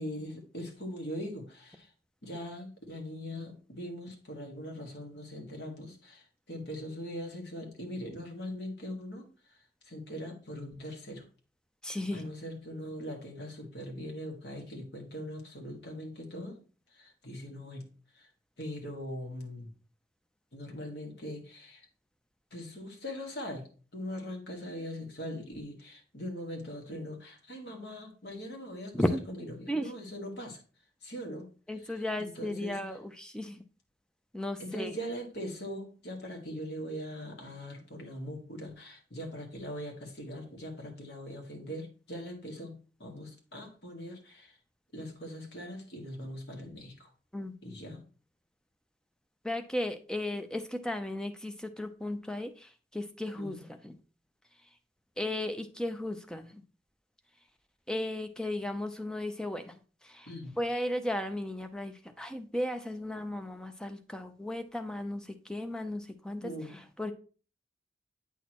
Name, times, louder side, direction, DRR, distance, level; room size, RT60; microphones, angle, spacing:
voice 1, 0.0-1.9 2.2-11.2 11.8-16.6 16.9-18.3 18.6-19.7 20.5-21.9 22.5-28.9 29.3-30.6 31.0-31.5 31.8-32.8 34.6-44.6 44.9-47.1 47.6-48.0 53.4-53.6 60.3-60.5 66.4-66.7, equal, 60° left, 1 dB, 1.7 m, -41 dB
voice 2, 11.8-12.3 28.9-29.2 29.7-29.9 31.7-33.6 34.3-34.9 47.3-47.8 49.4-54.0 55.2-56.6 57.9-59.8 60.0-60.3 60.6-67.1, left 1 dB, 5° left, 7 dB, 0.5 m, -35 dB
8.2 x 6.2 x 3.0 m, 0.38 s
head